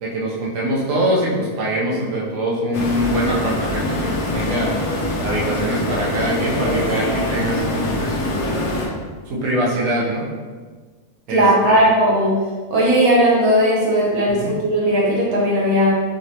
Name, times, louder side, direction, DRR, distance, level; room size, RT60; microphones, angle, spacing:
voice 1, 0.0-4.7 5.2-8.5 9.3-10.3 11.3-11.9 14.3-14.5, right 1 dB, 65° right, -5 dB, 1.3 m, -23 dB
sound 1, 2.7-8.9, left 1 dB, 85° left, 1.2 m, -24 dB
voice 2, 11.3-12.3 12.7-15.9, equal, 85° right, -4 dB, 1.4 m, -17 dB
5.1 x 3.2 x 2.8 m, 1.4 s
omnidirectional pair, 1.5 m